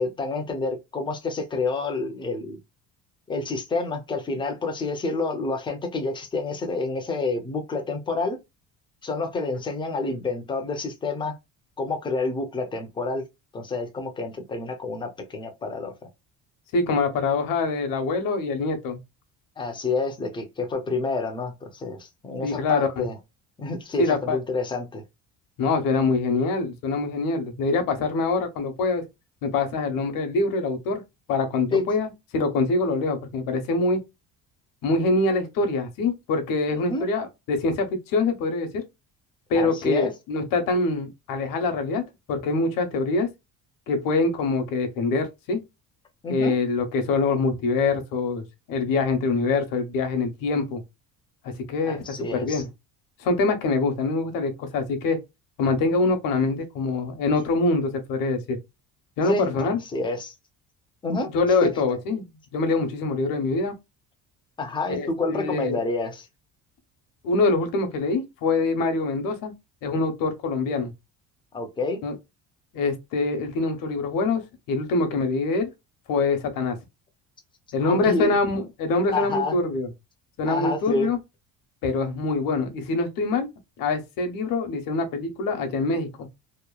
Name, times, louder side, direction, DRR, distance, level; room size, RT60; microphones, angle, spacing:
voice 1, 0.0-2.6 3.3-8.4 9.0-11.3 11.8-13.2 13.5-15.9 19.6-23.2 23.6-25.0 31.7-31.9 36.7-37.1 39.5-40.1 46.2-46.6 51.9-52.6 59.3-60.3 61.0-61.3 61.6-61.7 64.6-66.3 71.5-72.0 77.8-78.4 79.1-79.6 80.5-81.1, left 3 dB, 15° left, 0.4 m, -28 dB
voice 2, 16.7-19.0 22.4-23.1 24.0-24.4 25.6-29.0 29.4-31.0 31.3-34.0 34.8-38.8 39.5-42.0 42.3-43.3 43.9-45.6 46.3-50.8 51.4-52.7 53.2-55.2 55.6-58.6 59.2-59.8 61.1-62.3 62.5-63.7 64.9-65.8 67.2-69.5 69.8-70.9 72.0-72.2 72.7-75.7 76.1-76.8 77.7-79.9 80.4-81.2 81.8-83.5 83.8-86.3, left 3 dB, 65° left, 0.8 m, -24 dB
2.9 x 2.1 x 2.2 m
cardioid pair, 170°, 35 cm